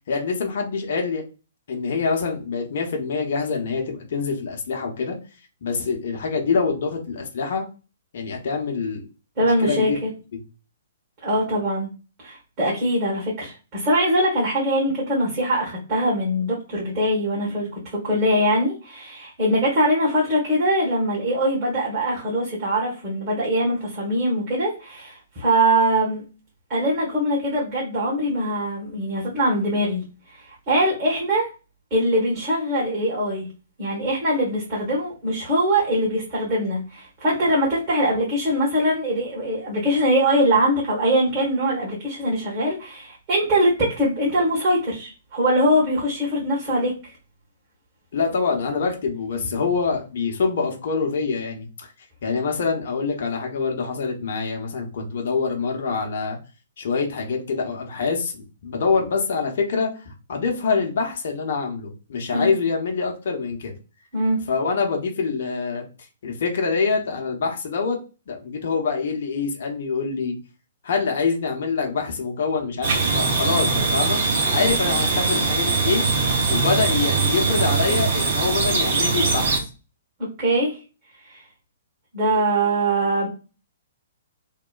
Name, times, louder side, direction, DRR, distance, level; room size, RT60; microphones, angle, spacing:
voice 1, 0.1-1.2 1.7-5.2 5.6-7.7 8.1-9.0 9.4-10.0 10.3-10.4 48.1-51.9 52.2-56.4 56.8-63.7 64.5-65.8 66.2-68.0 68.3-70.4 70.8-74.2 74.5-76.0 76.5-79.5, left 5 dB, 55° left, 1 dB, 0.6 m, -25 dB
voice 2, 9.4-10.1 11.2-11.9 12.2-26.2 26.7-30.0 30.3-30.4 30.7-31.5 31.9-33.5 33.8-47.1 62.3-62.5 64.1-64.4 80.2-80.8 81.2-81.4 82.1-83.3, right 1 dB, 35° right, -7 dB, 1.3 m, -22 dB
sound 1, 72.8-79.6, right 4 dB, 50° right, 0.7 m, -21 dB
2.9 x 2.1 x 2.3 m, 0.33 s
figure-of-eight pair, 120°, 0 cm